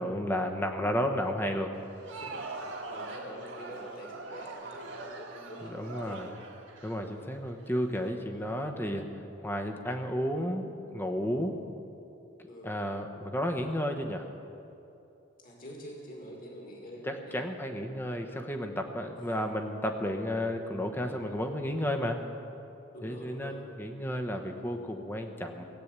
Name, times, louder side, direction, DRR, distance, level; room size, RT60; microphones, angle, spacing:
voice 1, 0.0-1.7 5.6-6.3 6.8-11.6 12.6-14.3 17.0-22.2 23.0-25.6, equal, 10° left, 4 dB, 1.0 m, -32 dB
Crowd, 1.8-7.7, right 3 dB, 65° right, 1.9 m, -42 dB
voice 2, 2.1-2.4 2.9-6.3 7.0-7.3 8.3-8.6 12.5-12.8 15.4-17.4 19.2-19.4 22.9-23.7, equal, 45° left, -1 dB, 2.3 m, -46 dB
17.5 x 8.7 x 8.2 m, 2.8 s
head